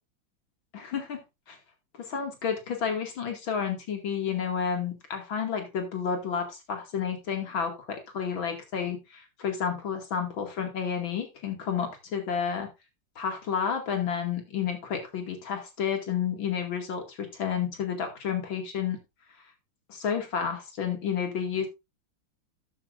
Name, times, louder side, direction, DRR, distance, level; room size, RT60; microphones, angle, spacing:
voice 1, 0.7-1.2 1.5-1.6 2.0-12.7 13.2-19.0 19.9-21.7, left 7 dB, 70° left, 4 dB, 3.0 m, -31 dB
13.0 x 8.6 x 2.5 m, 0.24 s
omnidirectional pair, 2.3 m